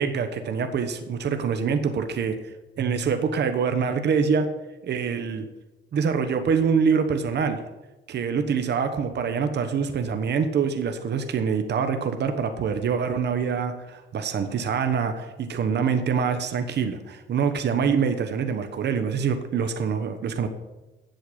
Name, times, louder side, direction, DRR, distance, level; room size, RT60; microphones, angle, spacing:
voice 1, 0.0-4.5 4.8-5.5 5.9-7.6 8.1-20.5, right 6 dB, 60° right, 7 dB, 1.2 m, -25 dB
7.9 x 7.9 x 8.7 m, 1.1 s
cardioid pair, 90°, 20 cm